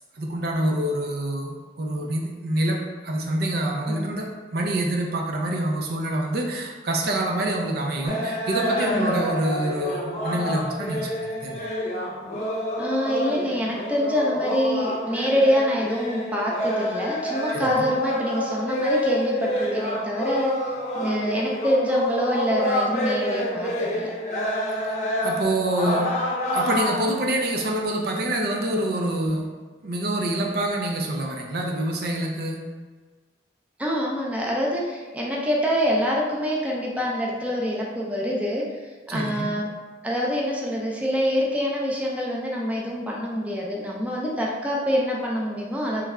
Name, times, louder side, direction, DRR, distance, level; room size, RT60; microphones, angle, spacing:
voice 1, 0.1-2.8 3.0-11.6 17.5-17.9 24.9-25.0 25.2-26.1 26.5-29.4 29.8-32.6 39.1-39.5, right 1 dB, 60° right, 0 dB, 0.5 m, -26 dB
sound 1, 8.1-27.0, equal, 40° left, 0.6 m, -28 dB
voice 2, 8.9-9.3 12.8-24.1 33.8-38.7 39.1-39.7 40.0-46.0, equal, 10° right, -3 dB, 0.5 m, -25 dB
3.4 x 3.2 x 3.5 m, 1.4 s
head